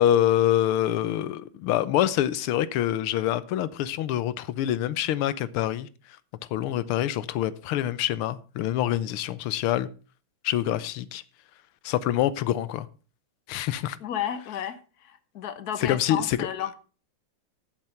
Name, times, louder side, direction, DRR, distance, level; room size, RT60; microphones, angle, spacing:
voice 1, 0.0-6.2 6.5-9.9 10.4-11.2 11.8-12.9 13.5-14.0 15.8-16.4, left 12 dB, 90° left, 1.6 m, -25 dB
voice 2, 14.0-16.7, left 10 dB, 50° left, 1.4 m, -32 dB
11.0 x 7.5 x 5.8 m
omnidirectional pair, 2.3 m